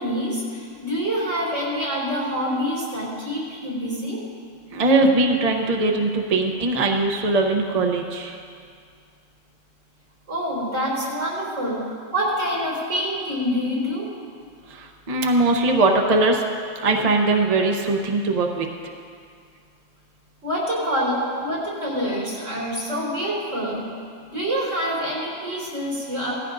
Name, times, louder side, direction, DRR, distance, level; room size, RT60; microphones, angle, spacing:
voice 1, 0.0-4.2 10.3-14.1 20.4-23.9 24.3-26.3, equal, 80° right, -5 dB, 4.4 m, -26 dB
voice 2, 4.7-8.4 14.7-16.4 16.8-18.7, right 2 dB, 35° right, 2 dB, 0.8 m, -20 dB
18.0 x 14.5 x 2.6 m, 2.2 s
omnidirectional pair, 1.3 m